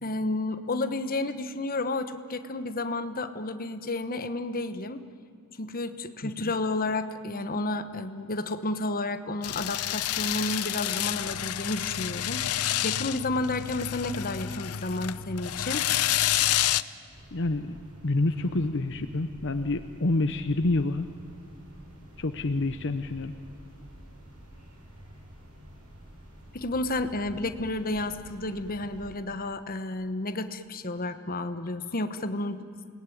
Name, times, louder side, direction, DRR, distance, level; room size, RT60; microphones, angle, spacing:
voice 1, 0.0-5.0 5.6-15.9 26.5-32.6, left 2 dB, 40° left, 9 dB, 1.2 m, -31 dB
sound 1, 9.4-16.8, left 12 dB, 80° left, 0.7 m, -29 dB
sound 2, 17.1-29.1, right 1 dB, 85° right, 7.3 m, -49 dB
voice 2, 17.3-17.8 18.0-21.1 22.2-23.3, left 2 dB, 55° left, 8 dB, 0.9 m, -28 dB
28.0 x 19.5 x 9.4 m, 2.4 s
head